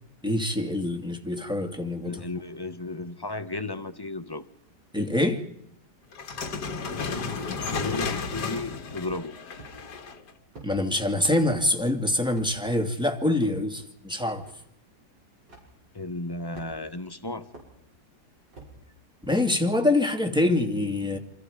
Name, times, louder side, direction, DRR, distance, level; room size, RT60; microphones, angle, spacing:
voice 1, 0.2-2.2 4.9-5.4 10.6-14.4 19.2-21.2, left 1 dB, 5° right, 2.5 m, -25 dB
voice 2, 2.0-4.5 6.9-9.4 15.9-17.5, left 2 dB, 15° left, 0.9 m, -34 dB
sound 1, 6.1-10.3, left 4 dB, 65° left, 2.2 m, -33 dB
sound 2, 9.5-10.0 10.5-10.7 11.5-11.7 12.3-12.5 13.4-13.6 14.4-14.5 15.5-15.7 16.5-17.0 17.5-17.7 18.5-18.8, right 3 dB, 85° right, 7.7 m, -46 dB
28.5 x 27.0 x 5.2 m
omnidirectional pair, 1.9 m